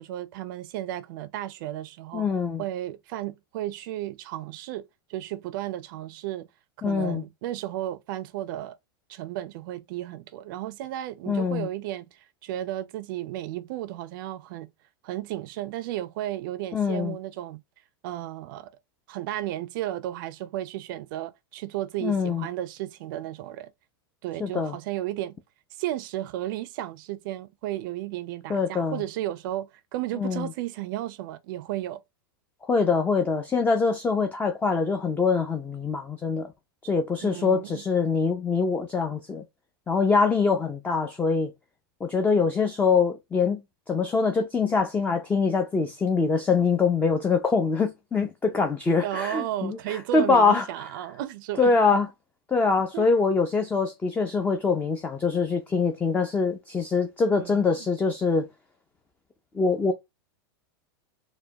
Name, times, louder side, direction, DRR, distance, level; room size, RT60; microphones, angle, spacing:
voice 1, 0.0-2.3 2.6-6.5 6.8-8.8 9.1-14.7 15.0-17.6 18.0-18.7 19.1-23.7 24.2-25.4 25.7-32.0 37.2-37.8 49.0-51.7 52.9-53.1 57.4-57.9, right 14 dB, 60° right, 0.4 m, -34 dB
voice 2, 2.1-2.6 6.8-7.2 11.3-11.7 16.7-17.2 22.0-22.5 24.4-24.7 28.5-29.0 30.2-30.5 32.6-36.5 36.8-39.4 39.9-41.5 42.0-43.6 43.9-50.7 51.6-52.1 52.5-58.5 59.5-59.9, left 4 dB, 15° left, 0.4 m, -24 dB
4.7 x 2.2 x 2.8 m
hypercardioid pair, 120°, 12 cm